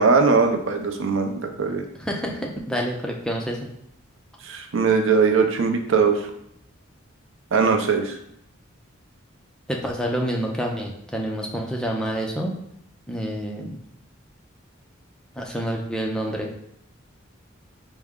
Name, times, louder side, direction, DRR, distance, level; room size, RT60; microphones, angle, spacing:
voice 1, 0.0-1.8 4.4-6.3 7.5-8.2, right 5 dB, 75° right, 5 dB, 0.5 m, -20 dB
voice 2, 2.0-3.6 9.7-12.5 13.1-13.7 15.4-16.5, equal, 5° left, -1 dB, 0.4 m, -28 dB
4.7 x 2.1 x 3.6 m, 0.74 s
head